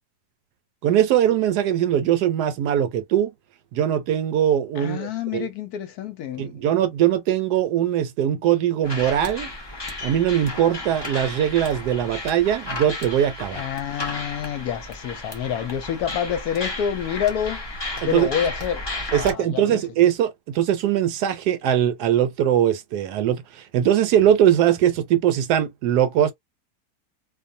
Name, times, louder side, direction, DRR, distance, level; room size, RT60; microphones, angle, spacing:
voice 1, 0.8-3.3 3.7-5.5 6.4-9.5 10.0-13.6 18.0-18.3 19.1-26.3, right 10 dB, 75° right, 1.1 m, -21 dB
voice 2, 4.8-6.5 13.5-17.6 18.0-19.8, left 9 dB, 75° left, 1.0 m, -28 dB
sound 1, 8.8-19.3, left 2 dB, 30° left, 0.5 m, -33 dB
2.5 x 2.3 x 2.6 m
omnidirectional pair, 1.8 m